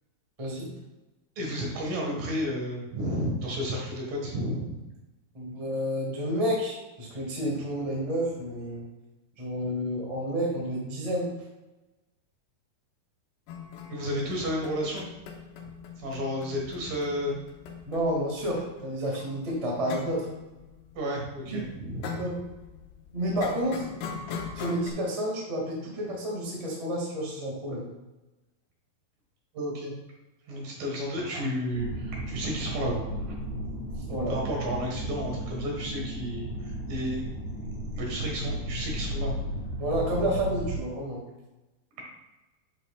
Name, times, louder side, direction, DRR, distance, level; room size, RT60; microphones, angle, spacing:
voice 1, 0.4-0.7 5.3-8.9 9.4-11.3 17.8-20.3 21.5-21.6 22.2-22.4 23.1-23.9 24.5-27.9 34.1-34.3 39.8-41.2, equal, 25° right, -3 dB, 0.8 m, -30 dB
voice 2, 1.4-4.8 13.9-15.1 15.6-17.3 20.9-22.3 29.5-29.9 30.5-33.3 34.3-37.4 37.9-39.3 41.9-42.0, equal, 65° right, -2 dB, 3.3 m, -32 dB
sound 1, 13.5-24.9, left 6 dB, 90° left, 3.0 m, -42 dB
sound 2, 31.7-40.8, right 1 dB, 35° left, 1.3 m, -34 dB
10.5 x 5.8 x 2.4 m, 1.1 s
omnidirectional pair, 4.5 m